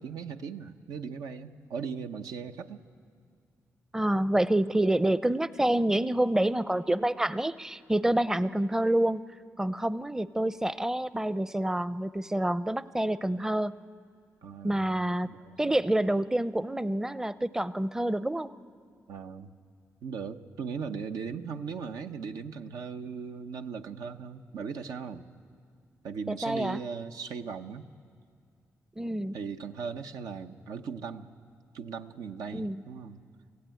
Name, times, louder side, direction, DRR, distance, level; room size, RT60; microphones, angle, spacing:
voice 1, 0.0-2.8 14.4-14.9 15.2-15.6 19.1-19.5 20.0-25.3 26.0-27.9 29.3-31.3 31.7-33.2, right 6 dB, 90° right, 6 dB, 0.8 m, -38 dB
voice 2, 3.9-9.2 9.6-13.7 14.6-15.3 15.6-18.5 26.3-26.8 29.0-29.3 32.5-32.8, right 1 dB, 10° right, 16 dB, 0.5 m, -27 dB
24.5 x 16.0 x 9.1 m, 2.2 s
cardioid pair, 65°, 6 cm